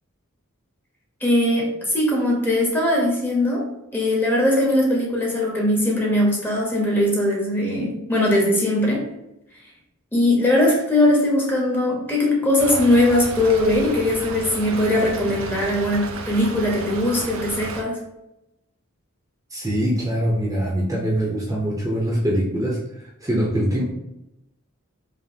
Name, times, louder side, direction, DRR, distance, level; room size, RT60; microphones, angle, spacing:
voice 1, 1.2-3.6 3.9-9.0 10.1-18.0, left 1 dB, 10° left, -2 dB, 0.9 m, -20 dB
Stream / Trickle dribble, 12.6-17.8, right 3 dB, 70° right, 0.5 m, -33 dB
voice 2, 19.5-22.8 23.2-23.8, equal, 15° right, -4 dB, 0.7 m, -23 dB
5.0 x 2.5 x 2.8 m, 0.88 s
head